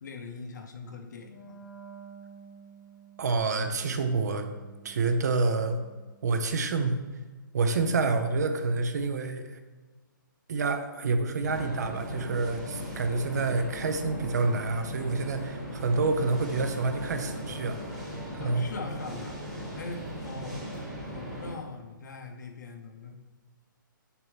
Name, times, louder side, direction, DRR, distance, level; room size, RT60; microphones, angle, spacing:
voice 1, 0.0-1.5 18.4-20.7 21.1-23.1, left 3 dB, 55° left, 4 dB, 0.9 m, -41 dB
Wind instrument woodwind instrument, 1.2-6.3, right 5 dB, 80° left, 1.3 m, -51 dB
voice 2, 3.2-4.5 4.8-5.8 6.2-7.0 7.5-9.6 10.5-17.8 18.3-18.6, right 3 dB, 50° right, 8 dB, 0.7 m, -28 dB
sound 1, 11.4-21.5, equal, 5° right, 1.2 m, -38 dB
6.9 x 5.9 x 3.4 m, 1.3 s
hypercardioid pair, 165°, 11 cm